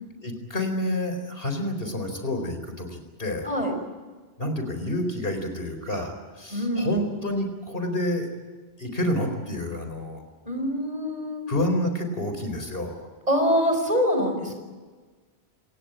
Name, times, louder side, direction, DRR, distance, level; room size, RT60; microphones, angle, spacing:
voice 1, 0.2-3.5 4.4-8.3 8.8-10.2 11.5-13.1, left 1 dB, 60° left, 6 dB, 4.6 m, -29 dB
voice 2, 3.4-3.8 6.5-7.0 10.5-11.5 13.3-14.5, equal, 35° right, 4 dB, 5.8 m, -24 dB
27.0 x 17.5 x 9.1 m, 1.4 s
omnidirectional pair, 1.1 m